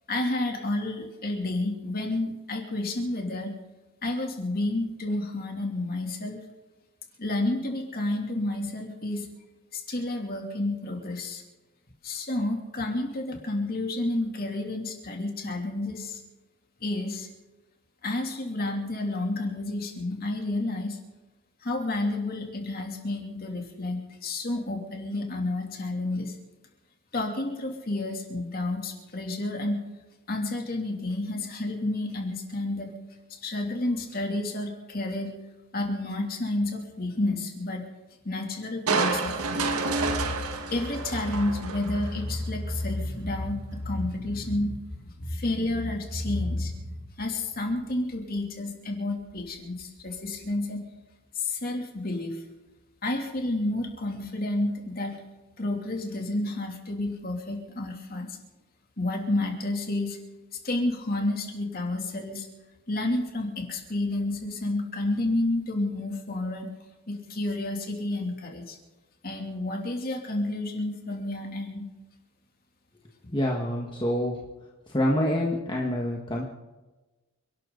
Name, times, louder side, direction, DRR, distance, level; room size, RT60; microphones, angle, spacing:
voice 1, 0.1-3.6 4.0-6.4 7.2-9.3 9.7-11.4 12.0-16.2 16.8-17.3 18.0-21.0 21.6-26.4 27.1-29.8 30.3-32.9 33.3-35.4 35.7-37.8 38.2-40.4 40.7-44.8 45.1-50.8 51.3-52.4 53.0-55.2 55.6-58.4 59.0-60.2 60.5-62.5 62.9-66.7 67.1-68.8 69.2-71.9, left 2 dB, 40° left, 2 dB, 2.9 m, -30 dB
Crushing, 38.9-42.2 42.7-42.8, right 4 dB, 85° right, 1.7 m, -29 dB
voice 2, 73.3-74.3 74.9-76.4, left 1 dB, 20° left, -2 dB, 1.6 m, -26 dB
29.0 x 12.5 x 4.0 m, 1.2 s
head